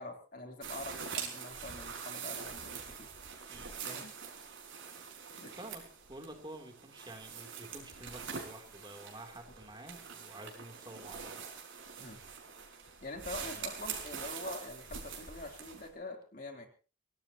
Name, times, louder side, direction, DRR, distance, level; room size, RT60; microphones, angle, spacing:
voice 1, 0.0-3.1 3.8-4.1 5.4-5.5 12.0-12.2 13.0-16.7, left 2 dB, 45° left, 3 dB, 3.3 m, -45 dB
sound 1, 0.6-15.9, right 6 dB, 75° right, 5.3 m, -44 dB
voice 2, 5.0-5.8 6.1-11.4 13.4-13.7, right 1 dB, 25° right, 3 dB, 3.1 m, -50 dB
24.0 x 18.0 x 2.9 m, 0.36 s
head